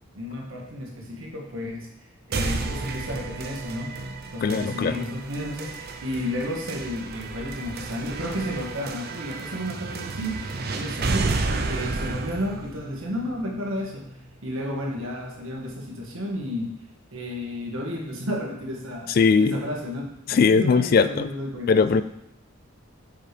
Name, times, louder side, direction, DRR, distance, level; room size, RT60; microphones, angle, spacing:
voice 1, 0.1-1.9 2.3-3.9 4.3-14.1 14.4-16.8 17.1-19.1 19.4-21.7, equal, 85° right, 0 dB, 1.5 m, -32 dB
sound 1, 2.3-14.3, right 3 dB, 50° right, 0.5 m, -32 dB
voice 2, 4.4-5.0 19.2-19.6 20.3-21.3 21.7-22.0, left 5 dB, 45° left, 13 dB, 0.3 m, -19 dB
7.4 x 4.9 x 3.3 m, 0.77 s
head